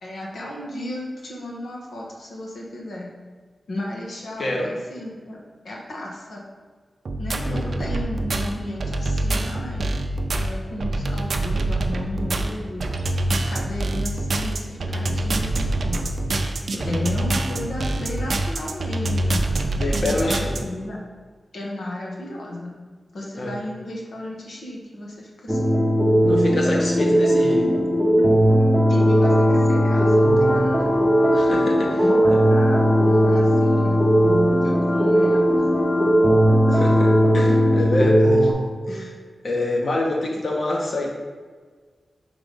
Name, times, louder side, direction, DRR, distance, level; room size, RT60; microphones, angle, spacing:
voice 1, 0.0-3.1 3.7-5.4 5.6-6.4 7.2-9.9 10.4-12.9 13.3-14.6 14.9-16.1 16.9-19.4 20.0-21.0 21.5-22.7 23.1-25.8 26.5-26.6 28.2-28.3 28.9-30.9 32.0-34.0 34.6-35.5 36.7-36.8, left 1 dB, 85° left, -3 dB, 1.3 m, -33 dB
voice 2, 4.4-4.8 7.4-7.9 16.7-17.0 19.8-20.6 23.4-23.6 26.2-27.7 31.3-32.4 36.7-38.5 38.9-39.2 39.4-41.1, left 1 dB, 55° left, -1 dB, 1.1 m, -26 dB
sound 1, 7.1-20.6, right 2 dB, 65° right, 0.5 m, -25 dB
sound 2, 25.5-38.5, equal, ahead, 0.8 m, -18 dB
sound 3, 28.8-37.6, left 2 dB, 20° left, 0.4 m, -32 dB
4.9 x 3.6 x 5.3 m, 1.5 s
wide cardioid pair, 135°, 0 cm